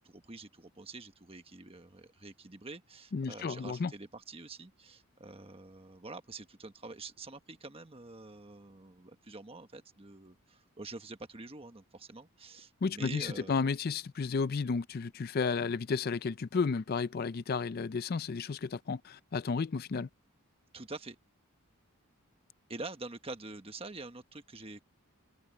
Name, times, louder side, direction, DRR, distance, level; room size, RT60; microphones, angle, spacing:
voice 1, 0.0-13.7 20.7-21.2 22.7-24.8, right 3 dB, 25° right, 1.3 m, -46 dB
voice 2, 3.1-3.9 12.8-20.1, left 5 dB, 45° left, 0.4 m, -32 dB
open air
head